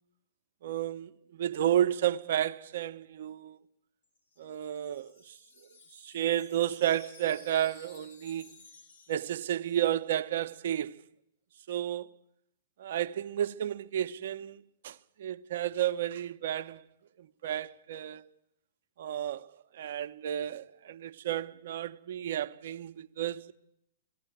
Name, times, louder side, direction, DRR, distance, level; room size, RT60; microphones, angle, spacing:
voice 1, 0.6-3.6 4.4-5.4 6.0-8.5 9.1-11.0 11.7-12.1 12.8-16.8 17.2-18.2 19.0-19.5 19.7-23.5, right 11 dB, 60° right, 0.9 m, -32 dB
Wind chime, 4.0-10.0, left 4 dB, 85° left, 4.4 m, -56 dB
18.0 x 15.5 x 9.2 m
hypercardioid pair, 120°, 0 cm